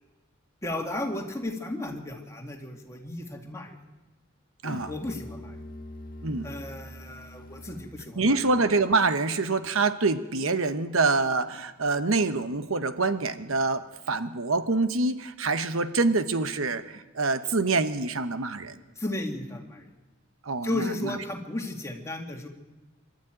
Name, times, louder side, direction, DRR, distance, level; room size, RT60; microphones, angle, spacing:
voice 1, 0.6-3.8 4.9-5.6 6.4-8.4 19.0-19.9 20.6-22.5, left 2 dB, 15° left, 1 dB, 2.3 m, -34 dB
Musical instrument, 4.6-8.2, left 1 dB, 45° left, 1.3 m, -43 dB
voice 2, 8.2-18.7 20.4-21.2, right 3 dB, 80° right, 11 dB, 1.1 m, -26 dB
25.5 x 13.0 x 9.1 m, 1.1 s
head